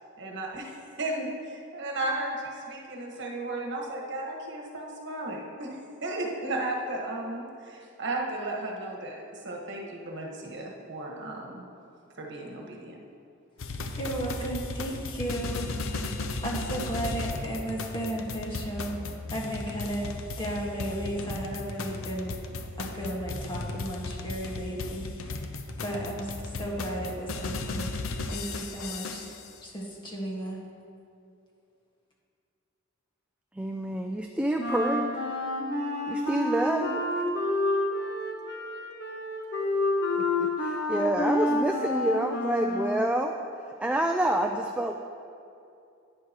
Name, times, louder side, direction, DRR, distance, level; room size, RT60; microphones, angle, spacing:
voice 1, 0.2-11.6 12.2-13.0, right 2 dB, 60° right, -1 dB, 1.3 m, -35 dB
sound 1, 13.6-29.5, left 3 dB, 85° left, 0.7 m, -35 dB
voice 2, 14.0-16.1 16.4-19.0 19.3-20.1 20.4-22.3 22.8-25.5 25.8-26.3 26.6-27.9 28.3-29.3 29.6-30.6, right 1 dB, 25° left, -3 dB, 1.5 m, -34 dB
voice 3, 33.6-35.1 36.1-37.0 39.6-39.7 40.1-40.2 40.6-43.3 43.8-44.9, right 1 dB, 5° right, 3 dB, 0.3 m, -28 dB
Wind instrument woodwind instrument, 34.6-43.2, left 2 dB, 55° left, 1.3 m, -29 dB
11.0 x 9.6 x 2.9 m, 2.5 s
head